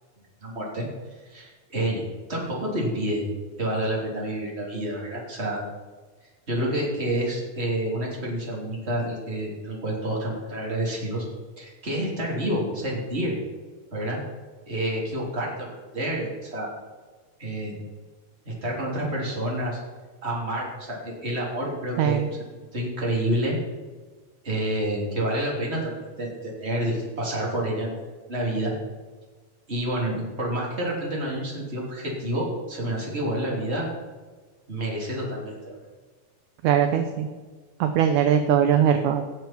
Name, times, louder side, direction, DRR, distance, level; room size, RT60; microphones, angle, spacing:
voice 1, 0.4-0.8 1.2-2.0 2.3-3.2 3.6-5.6 6.5-11.3 11.6-13.4 13.9-14.2 14.7-15.7 15.9-16.7 17.4-17.8 18.4-19.8 20.2-22.5 22.7-23.6 24.4-28.0 28.3-28.7 29.7-33.9 34.7-35.8, right 1 dB, 20° right, -3 dB, 3.1 m, -28 dB
voice 2, 22.0-22.3 36.6-37.3 37.8-39.2, right 9 dB, 75° right, 6 dB, 1.9 m, -21 dB
17.5 x 7.6 x 4.4 m, 1.4 s
omnidirectional pair, 4.2 m